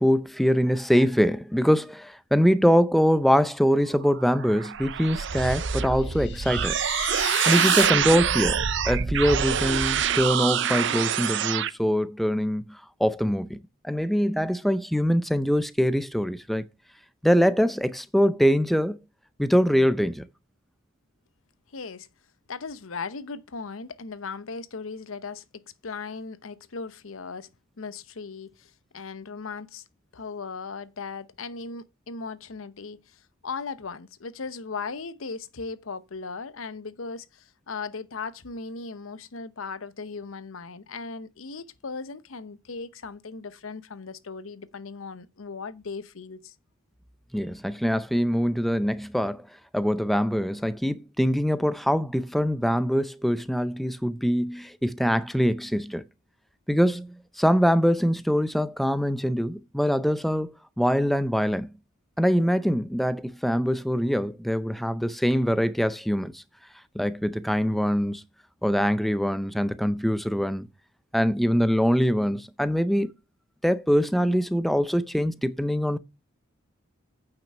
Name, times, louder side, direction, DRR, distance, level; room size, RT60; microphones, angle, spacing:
voice 1, 0.0-6.8 7.5-13.6 13.8-16.6 17.2-19.0 19.4-20.2 47.3-49.5 49.7-56.0 56.7-61.7 62.2-66.4 66.9-68.2 68.6-70.7 71.1-73.1 73.6-76.0, equal, ahead, 0.5 m, -23 dB
sound 1, 4.0-11.7, right 8 dB, 60° right, 0.6 m, -25 dB
sound 2, 5.9-7.9, left 13 dB, 55° left, 0.5 m, -33 dB
voice 2, 21.7-22.1 22.5-27.5 27.8-29.8 30.1-46.5, left 4 dB, 85° left, 0.8 m, -37 dB
9.0 x 5.9 x 5.4 m
head